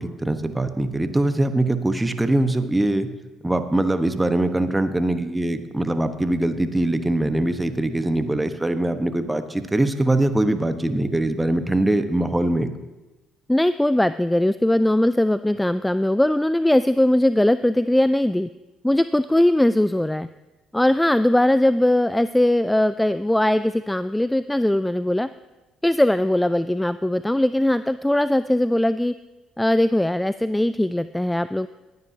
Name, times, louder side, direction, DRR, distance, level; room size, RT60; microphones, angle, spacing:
voice 1, 0.0-3.1 3.4-12.7, right 1 dB, 10° right, 9 dB, 1.1 m, -22 dB
voice 2, 13.5-18.5 18.8-20.3 20.7-25.3 25.8-29.1 29.6-31.7, left 1 dB, 10° left, 14 dB, 0.3 m, -20 dB
20.5 x 9.5 x 2.8 m, 1.1 s
hypercardioid pair, 50°, 0 cm